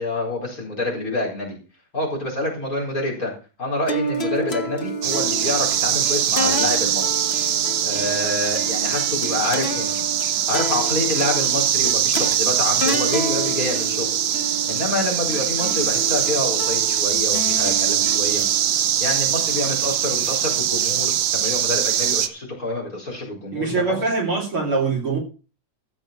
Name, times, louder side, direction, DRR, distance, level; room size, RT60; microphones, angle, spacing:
voice 1, 0.0-1.6 1.9-3.3 3.6-7.1 7.8-9.9 10.5-14.1 14.7-24.0, left 2 dB, 25° left, 0 dB, 4.6 m, -27 dB
sound 1, 3.9-20.3, equal, 60° left, 0.6 m, -31 dB
sound 2, 5.0-22.3, right 10 dB, 70° right, 1.8 m, -22 dB
voice 2, 23.5-25.2, right 4 dB, 45° right, -1 dB, 3.6 m, -23 dB
15.0 x 6.4 x 5.9 m, 0.35 s
omnidirectional pair, 3.5 m